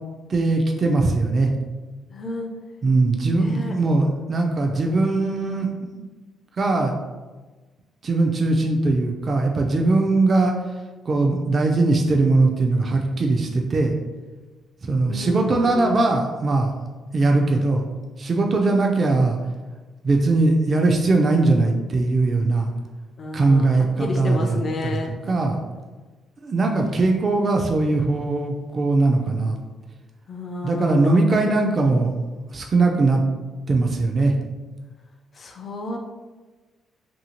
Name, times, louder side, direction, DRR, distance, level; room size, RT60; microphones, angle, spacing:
voice 1, 0.3-1.5 2.8-6.0 6.6-6.9 8.0-10.5 11.1-13.9 14.8-16.7 17.1-17.8 18.2-19.4 20.0-22.7 23.3-25.0 25.3-25.6 26.4-29.6 30.6-32.1 32.5-33.2 33.7-34.4, right 3 dB, 40° right, 2 dB, 0.3 m, -20 dB
voice 2, 2.1-2.5 3.4-3.8 15.1-16.1 23.2-23.7 24.0-25.1 30.3-31.2 35.3-36.0, left 2 dB, 45° left, 2 dB, 0.4 m, -30 dB
2.7 x 2.6 x 2.8 m, 1.3 s
cardioid pair, 90°, 0 cm